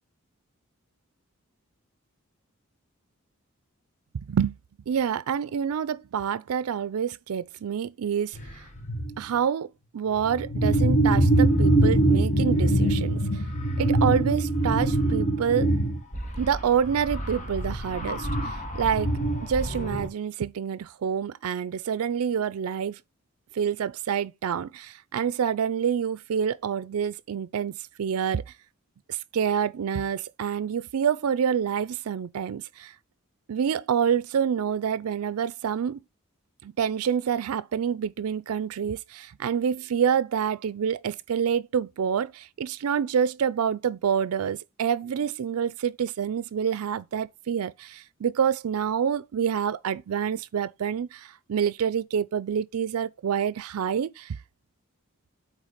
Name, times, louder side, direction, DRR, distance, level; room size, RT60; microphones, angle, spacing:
voice 1, 4.2-4.6 4.9-8.7 9.2-13.5 13.8-15.7 16.4-19.1 19.4-23.0 23.5-28.4 29.1-32.9 33.5-36.0 36.6-54.4, right 7 dB, 90° right, 0.4 m, -27 dB
sound 1, 8.3-8.5 8.8-9.2 10.2-20.1, right 1 dB, 35° left, 1.3 m, -24 dB
8.3 x 3.2 x 5.1 m
head